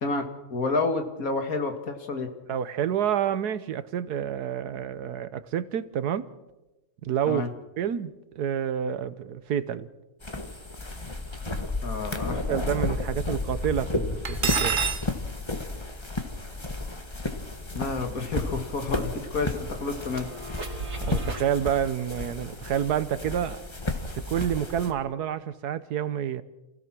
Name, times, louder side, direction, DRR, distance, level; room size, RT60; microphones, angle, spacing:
voice 1, 0.5-2.3 7.3-7.5 11.8-12.4 17.7-20.3, left 3 dB, 60° left, 2.3 m, -29 dB
voice 2, 2.5-6.3 7.0-7.5 7.8-9.9 12.4-14.8 21.0-23.6 24.1-26.4, right 9 dB, 80° right, 1.5 m, -28 dB
sound 1, 10.2-24.9, left 2 dB, 20° left, 1.5 m, -33 dB
Cutlery silverware, 14.2-15.0, right 6 dB, 40° right, 0.9 m, -26 dB
sound 2, 16.1-16.2 16.5-21.5, right 1 dB, 55° right, 2.9 m, -39 dB
28.0 x 16.5 x 6.1 m
omnidirectional pair, 1.7 m